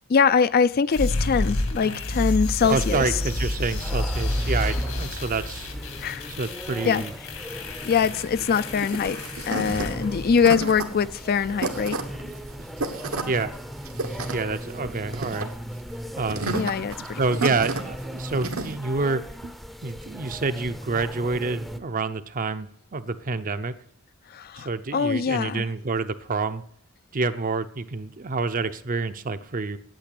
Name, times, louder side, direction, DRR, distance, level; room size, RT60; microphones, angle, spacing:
voice 1, 0.1-3.1 6.0-6.3 6.8-7.1 7.8-12.0 16.5-17.2 24.3-25.7, left 6 dB, 45° left, 0.4 m, -23 dB
sound 1, 0.9-10.9, left 1 dB, 75° left, 2.1 m, -30 dB
sound 2, 2.6-21.8, equal, ahead, 0.6 m, -38 dB
voice 2, 2.7-5.7 6.4-7.1 12.2-12.3 13.2-13.5 14.3-15.5 16.2-16.6 17.0-19.6 19.8-23.7 24.6-26.6 27.1-29.8, right 3 dB, 40° right, 0.7 m, -28 dB
sound 3, 8.1-18.7, right 3 dB, 80° right, 1.4 m, -32 dB
9.0 x 8.8 x 8.4 m
head